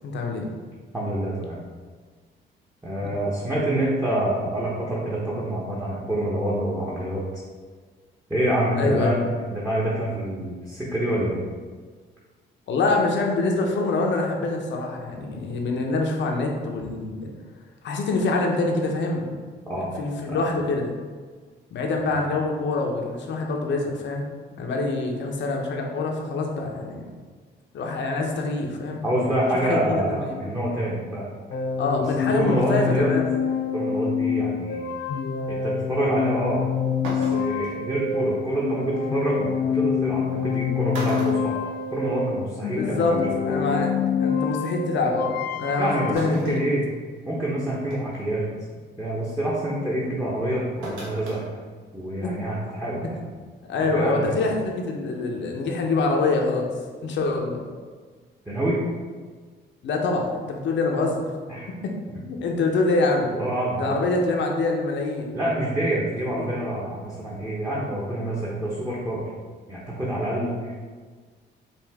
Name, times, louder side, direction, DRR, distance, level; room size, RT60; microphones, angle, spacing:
voice 1, 0.0-0.5 3.0-3.1 8.8-9.1 12.7-17.3 17.8-19.4 19.7-20.9 21.7-24.3 24.6-27.0 27.7-29.0 29.5-29.8 30.1-30.5 31.8-33.3 42.8-43.9 44.2-46.6 52.2-52.3 53.7-56.7 57.0-57.6 59.8-61.3 61.8-61.9 62.3-63.3 63.8-65.3 66.3-66.5, left 3 dB, 70° left, 1 dB, 0.8 m, -25 dB
voice 2, 0.9-1.6 2.8-7.4 8.3-9.2 9.4-11.4 19.6-19.9 20.3-20.4 22.1-22.2 29.0-31.3 32.3-33.1 33.7-34.9 35.5-36.6 37.0-41.6 41.9-43.6 45.8-46.8 47.2-48.4 49.0-51.4 51.9-53.1 53.8-54.3 58.5-58.8 61.5-61.7 62.1-62.2 63.3-64.0 65.3-69.2 69.7-70.8, right 1 dB, 10° right, -6 dB, 1.0 m, -26 dB
sound 1, 31.5-46.1, left 7 dB, 50° left, 0.4 m, -27 dB
sound 2, 36.5-36.6 37.0-37.7 39.3-39.4 40.4-40.6 40.9-42.3 42.7-42.8 44.0-44.1 46.2-46.7 47.2-47.3 47.9-48.2 50.8-51.4 51.8-51.9, right 1 dB, 90° right, 1.0 m, -35 dB
5.3 x 2.5 x 3.5 m, 1.5 s
cardioid pair, 90°, 20 cm